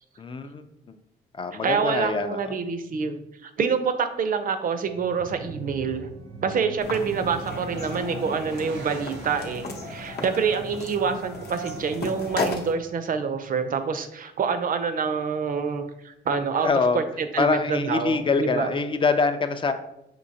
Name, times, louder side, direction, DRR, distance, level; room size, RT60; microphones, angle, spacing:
voice 1, 0.2-0.6 0.9-1.0 1.3-2.6 16.5-17.0 17.4-19.7, left 4 dB, 25° left, 9 dB, 0.4 m, -24 dB
voice 2, 1.6-6.1 6.4-16.7 16.9-18.8, right 6 dB, 45° right, 9 dB, 0.5 m, -27 dB
sound 1, 4.9-10.2, right 4 dB, 80° right, 0.7 m, -41 dB
sound 2, 6.8-12.7, left 3 dB, 55° left, 0.7 m, -34 dB
sound 3, 7.4-11.8, right 3 dB, 85° left, 1.0 m, -44 dB
5.2 x 2.7 x 2.7 m, 0.81 s
cardioid pair, 90°, 20 cm